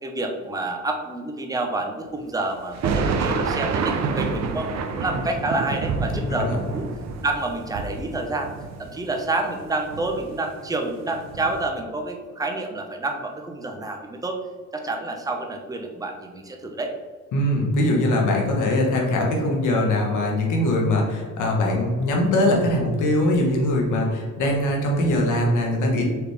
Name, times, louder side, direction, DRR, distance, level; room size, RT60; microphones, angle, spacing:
voice 1, 0.0-6.9 7.2-8.5 8.8-14.4 14.7-16.9 24.6-24.9, right 2 dB, 10° right, 3 dB, 0.6 m, -28 dB
sound 1, 2.7-9.5 9.9-10.7 11.1-11.7, right 5 dB, 60° right, 0.6 m, -28 dB
voice 2, 6.1-6.5 17.3-26.0, left 1 dB, 80° left, 0 dB, 1.1 m, -22 dB
4.9 x 3.1 x 3.3 m, 1.5 s
cardioid pair, 90°, 30 cm